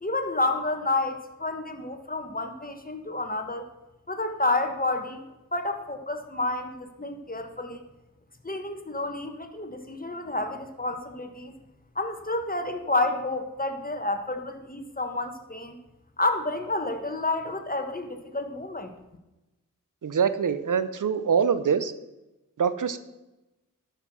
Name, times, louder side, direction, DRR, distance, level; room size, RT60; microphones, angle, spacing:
voice 1, 0.0-3.7 4.1-5.3 5.5-7.8 8.4-11.5 11.9-15.8 16.2-18.9, left 2 dB, 25° left, 6 dB, 1.3 m, -30 dB
voice 2, 20.0-21.9 22.6-23.0, right 6 dB, 65° right, 13 dB, 0.7 m, -24 dB
11.0 x 5.8 x 6.1 m, 1.0 s
cardioid pair, 45°, 33 cm